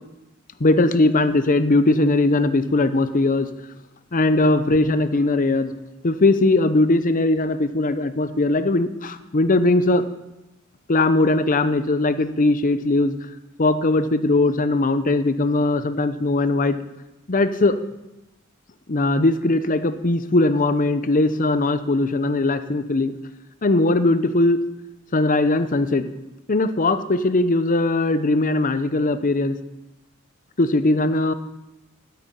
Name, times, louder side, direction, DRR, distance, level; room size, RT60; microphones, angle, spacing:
voice 1, 0.6-3.5 4.1-5.7 6.0-10.0 10.9-13.1 13.6-16.8 17.3-17.8 18.9-23.1 23.6-24.6 25.1-26.1 26.5-29.6 30.6-31.3, left 2 dB, 40° left, 11 dB, 0.7 m, -19 dB
9.5 x 8.5 x 9.5 m, 0.98 s
head